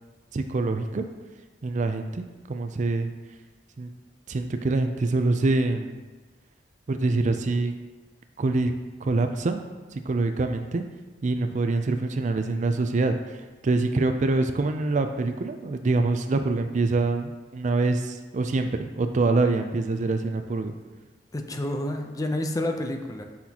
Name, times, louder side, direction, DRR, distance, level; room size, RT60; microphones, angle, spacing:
voice 1, 0.3-1.0 1.6-3.1 3.8-3.9 4.3-6.0 6.9-7.7 8.4-8.7 9.0-9.6 9.9-10.8 11.2-13.4 13.6-20.7, right 3 dB, 45° right, 7 dB, 0.4 m, -25 dB
voice 2, 21.3-23.2, left 1 dB, 20° left, 4 dB, 0.6 m, -29 dB
8.3 x 5.8 x 2.9 m, 1.3 s
head